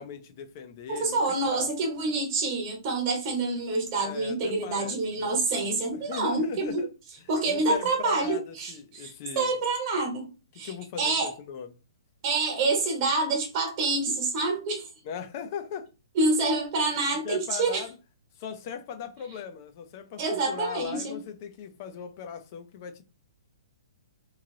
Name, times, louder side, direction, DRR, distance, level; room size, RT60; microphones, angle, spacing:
voice 1, 0.0-1.7 4.0-5.4 5.9-6.9 7.5-9.6 10.6-11.7 15.0-15.9 17.2-18.0 18.4-23.0, left 7 dB, 35° left, 0.6 m, -39 dB
voice 2, 0.9-6.8 7.3-10.3 10.5-11.3 12.2-14.9 16.1-17.8 20.2-21.2, right 3 dB, 25° right, 1.3 m, -27 dB
3.1 x 2.8 x 3.8 m
hypercardioid pair, 165°, 3 cm